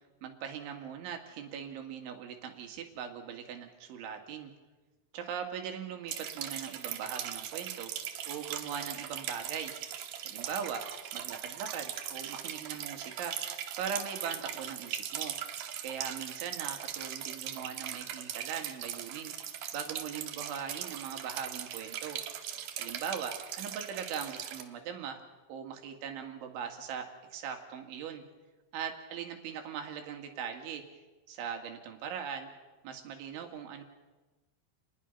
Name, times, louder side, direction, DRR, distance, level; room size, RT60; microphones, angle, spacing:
voice 1, 0.2-4.5 5.1-7.9 8.3-9.7 10.2-10.9 11.1-13.4 13.8-15.3 15.8-19.3 19.7-22.2 22.8-25.2 25.5-28.2 28.7-30.8 31.3-32.5 32.8-33.8, right 7 dB, 85° right, 4 dB, 4.6 m, -40 dB
sound 1, 6.1-24.6, right 10 dB, 65° right, 2.4 m, -40 dB
30.0 x 21.0 x 5.6 m, 1.2 s
omnidirectional pair, 5.4 m